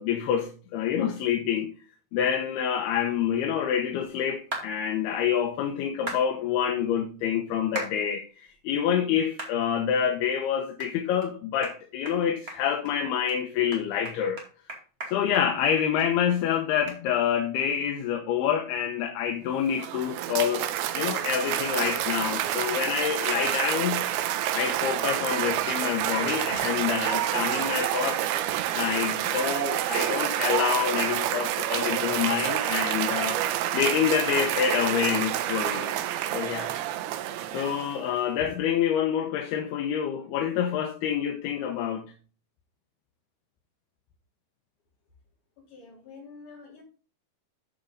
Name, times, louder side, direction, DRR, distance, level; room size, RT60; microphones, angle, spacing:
voice 1, 0.0-1.7 2.1-14.4 15.1-20.7 20.9-24.1 24.5-28.2 28.7-33.4 33.7-35.9 36.3-36.7 37.5-42.1, left 8 dB, 80° left, 2.9 m, -27 dB
sound 1, 4.5-4.7 6.1-6.2 7.8-8.0 8.5-8.6 9.4-9.6 10.0-10.1 10.8-10.9 11.2-11.3 11.6-11.8 12.1-12.2 12.5-12.9 13.3-13.4 13.7-16.1 16.4-16.5 16.9-17.0, right 1 dB, 20° right, 1.8 m, -36 dB
Cheering / Applause, 19.5-38.2, right 12 dB, 80° right, 2.7 m, -28 dB
voice 2, 45.6-46.8, left 4 dB, 50° left, 5.3 m, -47 dB
13.0 x 5.1 x 3.9 m
omnidirectional pair, 4.5 m